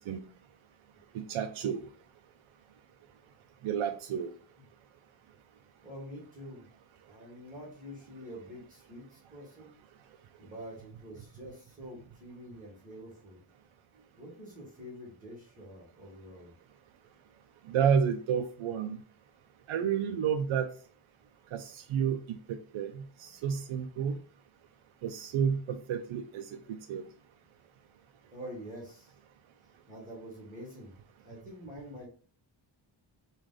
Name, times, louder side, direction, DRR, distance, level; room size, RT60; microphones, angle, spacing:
voice 1, 1.1-1.8 3.6-4.3 17.7-19.0 19.7-20.7 21.5-24.2 25.0-27.0, right 7 dB, 80° right, 6 dB, 0.5 m, -31 dB
voice 2, 5.8-6.7 7.1-9.7 10.4-13.4 14.1-16.5 23.3-23.5 28.3-29.1 29.9-30.9 31.2-32.1, equal, 15° right, -4 dB, 1.6 m, -46 dB
4.8 x 2.5 x 3.8 m, 0.42 s
wide cardioid pair, 170°, 48 cm